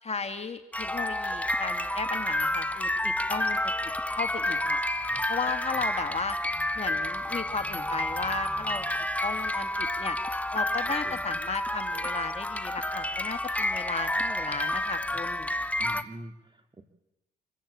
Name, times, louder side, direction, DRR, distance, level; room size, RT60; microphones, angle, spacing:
voice 1, 0.0-3.7 4.1-4.8 5.3-6.4 6.8-8.8 9.2-10.2 10.5-15.5, left 4 dB, 35° left, 7 dB, 2.6 m, -35 dB
sound 1, 0.7-16.0, left 1 dB, 10° left, 1.7 m, -30 dB
voice 2, 10.9-11.4 15.8-16.8, right 1 dB, 25° right, 5 dB, 3.5 m, -45 dB
27.0 x 15.5 x 8.9 m, 0.90 s
supercardioid pair, 60°, 18 cm